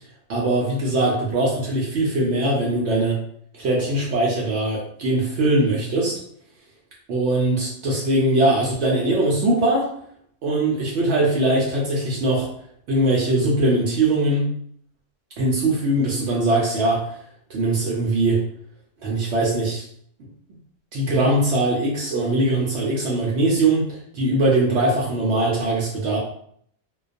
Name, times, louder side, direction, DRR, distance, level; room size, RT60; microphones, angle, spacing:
voice 1, 0.3-3.2 3.5-6.2 7.1-9.9 10.4-12.5 12.9-14.5 15.4-17.2 17.5-18.4 19.0-19.8 20.9-26.2, right 2 dB, 70° right, -3 dB, 0.8 m, -21 dB
2.2 x 2.2 x 2.5 m, 0.66 s
omnidirectional pair, 1.3 m